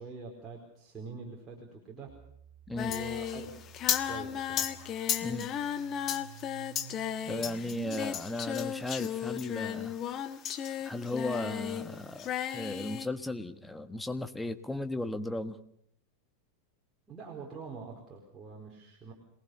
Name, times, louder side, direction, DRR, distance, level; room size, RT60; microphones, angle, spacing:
voice 1, 0.0-2.2 2.9-3.5 4.1-4.7 17.1-19.1, right 4 dB, 15° right, -2 dB, 4.6 m, -44 dB
sound 1, 2.1-8.0, right 7 dB, 60° right, 1.7 m, -50 dB
Singing, 2.8-11.9 12.2-13.1, left 9 dB, 30° left, 1.4 m, -34 dB
voice 2, 7.3-10.0 10.8-15.6, left 2 dB, 5° left, 9 dB, 1.5 m, -36 dB
27.0 x 19.5 x 6.9 m, 0.69 s
figure-of-eight pair, 90°, 0 cm